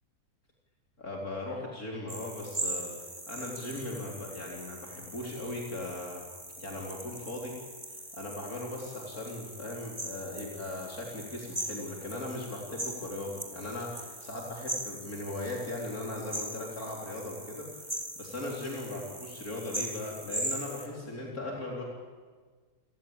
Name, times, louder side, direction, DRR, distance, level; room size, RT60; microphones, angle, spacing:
voice 1, 1.0-6.2 6.6-7.5 7.9-21.8, left 2 dB, 55° left, -2 dB, 4.4 m, -38 dB
sound 1, 2.1-20.9, right 1 dB, 15° right, 2.7 m, -40 dB
30.0 x 20.0 x 8.9 m, 1.5 s
omnidirectional pair, 1.8 m